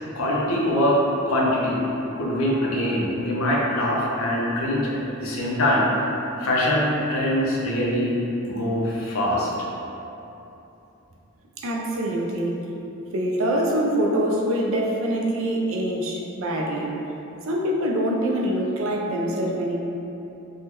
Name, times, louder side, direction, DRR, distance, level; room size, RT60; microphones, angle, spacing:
voice 1, 0.1-1.0 1.3-1.8 2.2-5.9 6.4-8.2 8.5-9.5, left 1 dB, 75° left, -4 dB, 0.6 m, -23 dB
voice 2, 11.6-12.6 13.1-17.0 17.5-19.8, right 1 dB, 70° right, -1 dB, 0.4 m, -24 dB
3.4 x 2.1 x 2.9 m, 3.0 s
head